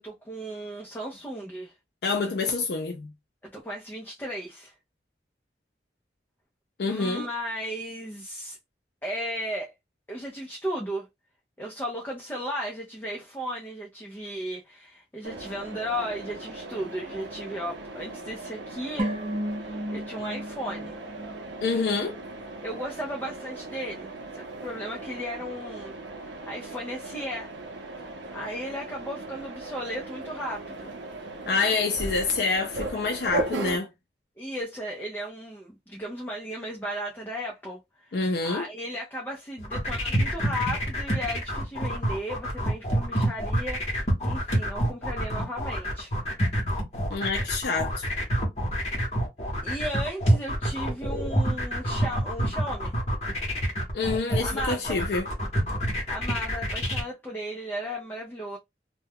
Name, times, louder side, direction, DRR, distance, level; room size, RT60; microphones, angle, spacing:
voice 1, 0.0-1.7 3.4-4.7 6.8-8.6 9.0-9.7 10.1-11.1 11.6-19.2 19.6-21.0 22.6-25.9 26.3-27.5 28.0-30.9 34.4-46.1 49.6-52.9 54.4-55.0 56.1-58.6, equal, 10° left, 0.5 m, -35 dB
voice 2, 2.0-3.1 6.8-7.3 21.6-22.2 31.5-33.9 38.1-38.7 47.1-48.1 53.9-55.3, left 4 dB, 65° left, 0.4 m, -27 dB
Mechanisms, 15.2-33.8, right 2 dB, 80° right, 0.6 m, -38 dB
sound 1, 19.0-22.3 22.5-22.6, equal, 30° right, 0.6 m, -34 dB
sound 2, 39.6-57.0, equal, 35° left, 0.9 m, -27 dB
2.2 x 2.2 x 3.4 m
head